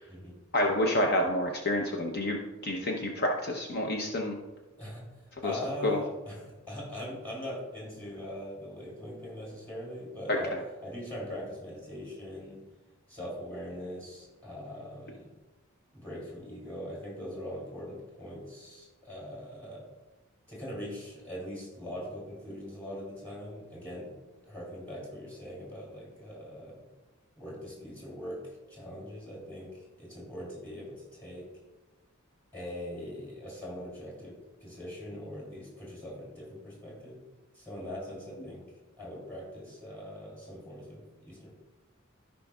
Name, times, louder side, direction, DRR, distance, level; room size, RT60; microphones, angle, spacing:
voice 1, 0.5-4.4 5.4-5.5 5.8-6.0 10.3-10.4, left 1 dB, 50° left, 1 dB, 0.7 m, -28 dB
voice 2, 5.4-10.5 10.8-12.6 13.1-15.3 15.9-19.8 20.5-24.1 24.4-26.8 27.4-28.4 28.7-29.7 30.0-31.5 32.5-34.3 34.6-37.2 37.5-38.6 39.0-41.5, equal, 10° left, -3 dB, 2.8 m, -41 dB
14.5 x 5.2 x 2.3 m, 1.1 s
head